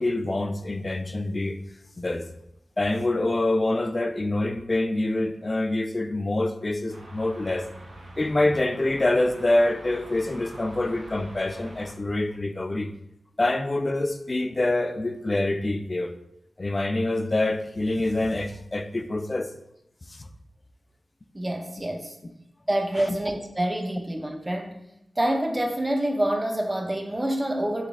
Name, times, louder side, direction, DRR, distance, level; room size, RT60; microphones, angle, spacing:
voice 1, 0.0-1.6 2.0-2.2 2.8-7.7 8.2-12.9 13.4-16.1 16.6-19.5 20.1-20.2 23.1-23.2, left 2 dB, 35° left, 0.4 m, -26 dB
sound 1, 6.9-11.9, right 1 dB, 80° right, 0.9 m, -45 dB
voice 2, 21.3-22.2 22.7-24.8 25.2-27.9, right 1 dB, 20° right, 0.6 m, -27 dB
4.0 x 3.2 x 3.6 m
cardioid pair, 65°, 0 cm